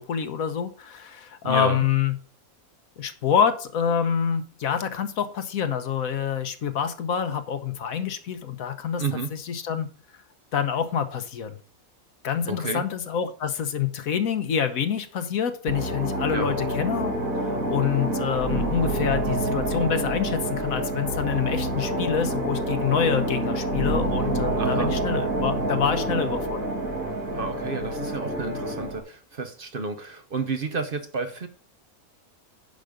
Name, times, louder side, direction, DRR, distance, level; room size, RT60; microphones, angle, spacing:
voice 1, 0.0-2.1 3.0-9.0 9.3-9.9 10.5-11.6 12.2-26.7, left 8 dB, 80° left, 1.4 m, -27 dB
voice 2, 1.4-1.9 9.0-9.3 12.5-12.8 16.3-16.6 24.6-24.9 27.3-31.5, right 4 dB, 45° right, 0.9 m, -31 dB
sound 1, 15.7-29.0, right 1 dB, 80° right, 2.5 m, -27 dB
10.5 x 5.3 x 5.0 m
omnidirectional pair, 1.5 m